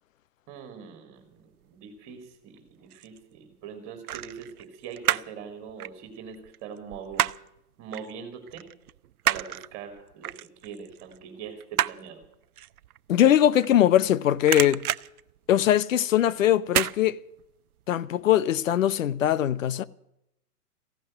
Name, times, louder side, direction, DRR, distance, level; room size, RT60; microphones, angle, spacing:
voice 1, 0.5-7.3 7.8-8.6 9.2-12.2, right 7 dB, 30° right, 3.0 m, -42 dB
sound 1, 2.6-3.2 4.0-5.4 5.7-7.6 7.9-8.1 8.5-14.1 14.4-16.0 16.7-17.0 17.4-17.5, right 12 dB, 70° right, 0.7 m, -30 dB
voice 2, 13.1-14.8 15.5-17.2 17.9-19.8, left 11 dB, 60° left, 0.8 m, -21 dB
15.5 x 12.0 x 7.7 m
hypercardioid pair, 125°, 46 cm